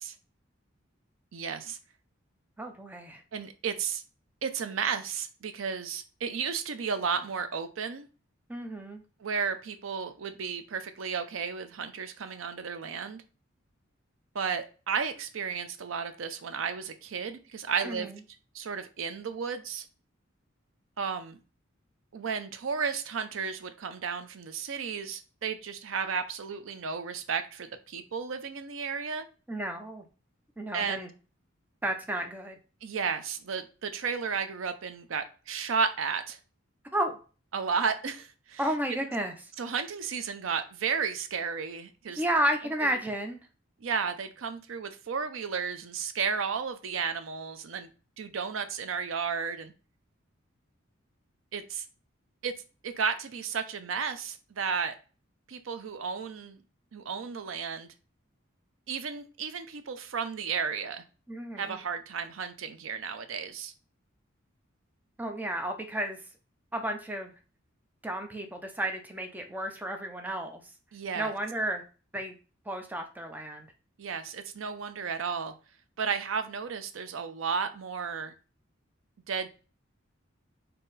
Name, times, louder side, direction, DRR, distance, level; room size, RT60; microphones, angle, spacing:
voice 1, 1.3-1.8 3.3-4.0 4.4-8.1 9.2-13.2 14.3-18.1 18.5-19.9 21.0-21.4 22.1-29.2 30.7-31.1 32.8-36.4 37.5-38.6 39.6-42.2 42.8-43.0 43.8-47.9 48.2-49.7 51.5-51.8 52.4-52.5 52.8-54.9 55.5-56.6 56.9-57.9 58.9-61.0 61.6-63.7 70.9-71.3 74.0-75.5 76.0-78.3 79.3-79.5, right 6 dB, 75° right, 10 dB, 0.5 m, -33 dB
voice 2, 2.6-3.2 8.5-9.0 17.8-18.2 29.5-30.0 30.6-31.1 31.8-32.6 36.9-37.2 38.6-39.4 42.1-43.4 61.3-61.8 65.2-66.2 66.7-67.3 68.0-70.6 71.2-71.8 72.1-72.3 72.7-73.7, right 1 dB, 10° right, 4 dB, 0.5 m, -32 dB
3.8 x 2.8 x 4.0 m, 0.35 s
head